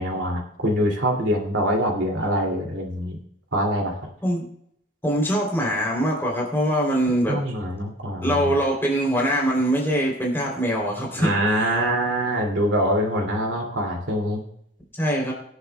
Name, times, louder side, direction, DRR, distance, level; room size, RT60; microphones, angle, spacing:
voice 1, 0.0-3.2 3.5-3.9 7.3-8.5 11.2-14.4, equal, 85° right, 2 dB, 2.6 m, -24 dB
voice 2, 5.0-7.4 8.2-11.7 15.0-15.3, equal, 10° left, -2 dB, 3.2 m, -23 dB
23.0 x 8.2 x 2.3 m, 0.72 s
head